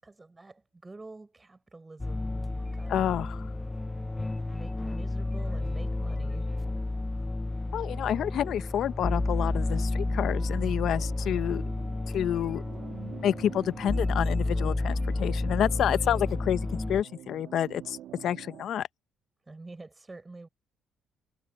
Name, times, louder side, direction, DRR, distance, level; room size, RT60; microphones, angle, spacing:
voice 1, 0.0-3.1 4.5-6.6 19.5-20.5, right 3 dB, 20° right, 6.6 m, -47 dB
sound 1, 2.0-17.0, left 2 dB, 15° left, 0.6 m, -31 dB
voice 2, 2.9-3.4 7.7-11.6 12.1-12.6 13.2-18.9, left 10 dB, 65° left, 0.8 m, -29 dB
sound 2, 9.7-18.7, right 12 dB, 75° right, 2.2 m, -47 dB
cardioid pair, 85°, 0 cm